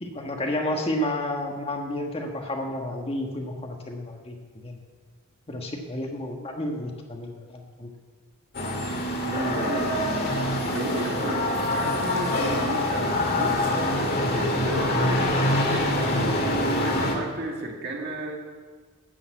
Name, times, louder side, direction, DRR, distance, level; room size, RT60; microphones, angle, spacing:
voice 1, 0.0-4.8 5.5-7.9, left 1 dB, 30° left, 2 dB, 1.4 m, -31 dB
sound 1, 8.5-17.1, left 1 dB, 50° left, 2.1 m, -25 dB
voice 2, 9.2-13.7 14.3-15.3 16.0-18.4, right 1 dB, 55° right, 0 dB, 2.3 m, -33 dB
12.5 x 7.0 x 8.2 m, 1.5 s
head